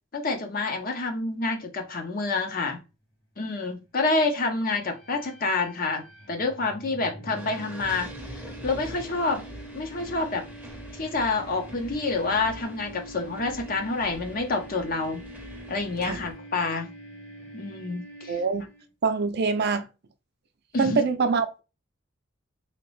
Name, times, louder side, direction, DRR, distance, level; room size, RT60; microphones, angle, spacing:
voice 1, 0.1-2.8 3.4-9.4 9.7-10.4 10.9-15.2 15.7-16.9 17.5-18.4 20.7-21.0, left 3 dB, 45° left, 0.6 m, -28 dB
sound 1, 4.8-18.8, right 1 dB, 75° left, 1.3 m, -45 dB
sound 2, 7.3-16.3, equal, 5° right, 0.7 m, -44 dB
voice 2, 18.3-18.7 19.0-19.9 20.8-21.6, right 4 dB, 55° right, 0.5 m, -24 dB
3.0 x 2.8 x 3.1 m
head